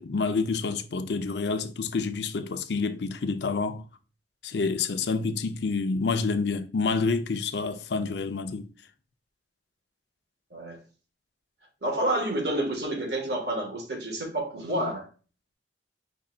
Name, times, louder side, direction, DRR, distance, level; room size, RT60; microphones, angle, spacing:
voice 1, 0.0-3.8 4.4-8.7, left 4 dB, 70° left, 0.5 m, -28 dB
voice 2, 11.8-15.1, right 1 dB, 65° right, 1.5 m, -29 dB
5.4 x 2.3 x 3.8 m
head